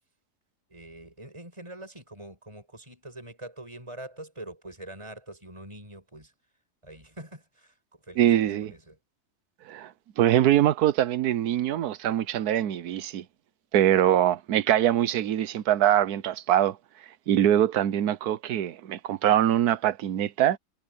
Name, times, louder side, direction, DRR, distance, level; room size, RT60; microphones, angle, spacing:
voice 1, 0.7-6.3 6.8-9.0, right 1 dB, 20° right, 7.2 m, -44 dB
voice 2, 8.2-8.7 9.7-9.9 10.2-13.2 13.7-16.8 17.3-20.6, right 11 dB, 75° right, 1.3 m, -23 dB
omnidirectional pair, 1.7 m